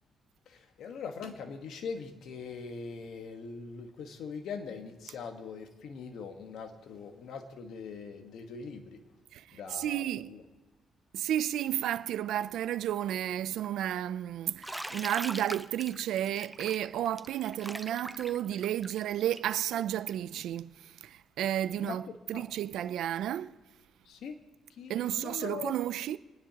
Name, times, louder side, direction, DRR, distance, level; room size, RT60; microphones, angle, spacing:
voice 1, 0.5-9.0 9.5-10.4 21.8-22.4 24.0-24.4 24.7-25.8, left 5 dB, 75° left, 1.4 m, -42 dB
voice 2, 9.3-10.4 11.1-22.0 22.3-23.6 24.9-26.2, right 11 dB, 80° right, 0.4 m, -32 dB
Bathtub (filling or washing), 14.6-20.3, right 1 dB, 5° right, 0.4 m, -42 dB
27.0 x 10.0 x 2.9 m
cardioid pair, 90°, 0 cm